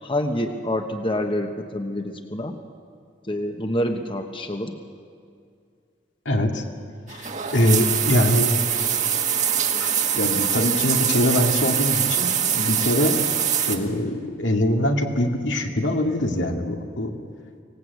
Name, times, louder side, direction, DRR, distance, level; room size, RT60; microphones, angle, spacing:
voice 1, 0.0-2.6 3.3-4.8, left 1 dB, 30° left, 5 dB, 1.2 m, -27 dB
voice 2, 6.3-6.6 7.1-8.5 9.8-13.2 13.7-17.1, left 1 dB, 80° left, 2 dB, 2.2 m, -23 dB
sound 1, 7.1-13.8, right 8 dB, 40° right, 1.6 m, -23 dB
25.0 x 18.0 x 8.2 m, 2.2 s
head